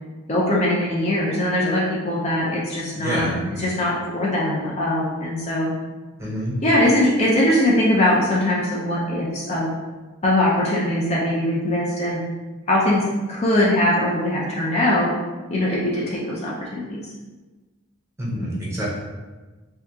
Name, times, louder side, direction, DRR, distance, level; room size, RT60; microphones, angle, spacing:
voice 1, 0.3-5.7 6.6-9.7 10.2-12.2 12.7-15.1 15.5-17.1, left 1 dB, 30° left, -5 dB, 0.4 m, -21 dB
voice 2, 3.0-3.4 6.2-6.5 18.2-18.8, equal, 15° right, -6 dB, 0.7 m, -26 dB
2.7 x 2.3 x 3.5 m, 1.2 s
head